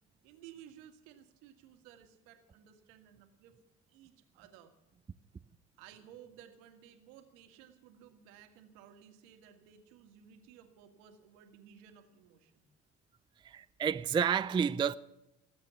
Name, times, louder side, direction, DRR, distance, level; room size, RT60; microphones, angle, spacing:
voice 1, 0.2-3.5 3.9-4.8 5.8-12.6, right 9 dB, 70° right, 1.8 m, -57 dB
voice 2, 13.4-14.9, right 7 dB, 15° right, 0.4 m, -30 dB
20.0 x 8.7 x 6.9 m
hypercardioid pair, 60°, 35 cm